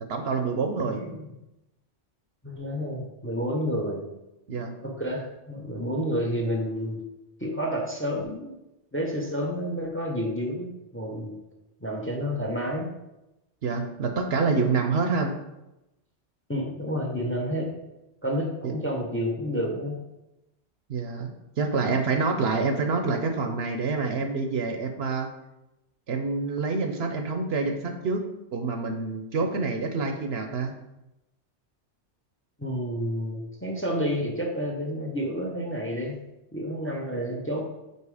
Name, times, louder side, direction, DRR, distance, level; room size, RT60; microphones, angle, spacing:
voice 1, 0.1-1.0 4.5-4.7 13.6-15.3 18.6-18.7 20.9-25.3 26.1-28.2 28.5-30.7, right 4 dB, 65° right, 5 dB, 0.9 m, -27 dB
voice 2, 0.8-1.3 2.4-4.0 4.8-7.0 7.4-8.6 8.9-11.4 11.8-12.9 16.5-17.7 18.2-20.0 32.6-36.2 36.5-37.7, equal, 10° left, 1 dB, 0.8 m, -30 dB
5.5 x 4.5 x 4.8 m, 0.93 s
omnidirectional pair, 1.2 m